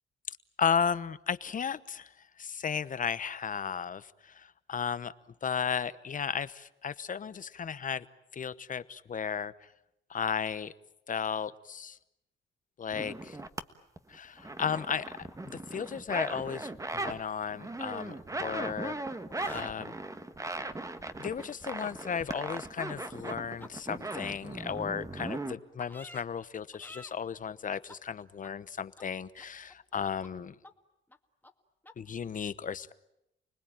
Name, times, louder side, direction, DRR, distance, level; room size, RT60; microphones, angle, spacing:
voice 1, 0.6-2.1 2.4-5.1 5.4-8.0 8.3-9.7 10.1-10.7 11.1-12.0 12.8-13.4 14.1-19.0 19.5-19.9 21.2-30.5 32.0-32.9, left 7 dB, 40° left, 16 dB, 1.0 m, -34 dB
sound 1, 12.9-13.6 14.0-17.2 17.5-25.5, right 2 dB, 15° right, 1.5 m, -38 dB
sound 2, 14.4-15.9 16.2-16.4 17.5-19.0 19.3-19.7 22.5-22.6 23.1-23.2 23.6-23.7 24.1-24.2 24.7-24.8 25.2-25.3 25.8-26.2 26.7-27.1 27.9-28.0 28.4-28.5 29.0-29.1 29.4-30.0 30.2-30.3 30.6-30.7 31.1-31.2 31.4-31.5 31.8-31.9, left 2 dB, 10° left, 2.0 m, -50 dB
30.0 x 20.0 x 9.0 m, 0.86 s
cardioid pair, 90°, 20 cm